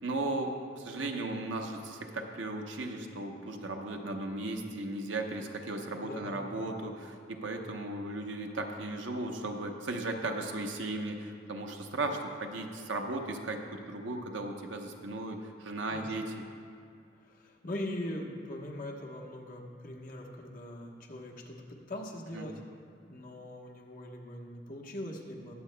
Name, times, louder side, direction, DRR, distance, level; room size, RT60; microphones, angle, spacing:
voice 1, 0.0-16.4 22.3-22.5, right 2 dB, 85° right, 3 dB, 0.9 m, -36 dB
voice 2, 5.9-6.5 15.9-16.1 17.2-22.6 23.1-25.5, left 1 dB, 45° left, -1 dB, 1.1 m, -41 dB
21.0 x 7.5 x 2.2 m, 2.4 s
head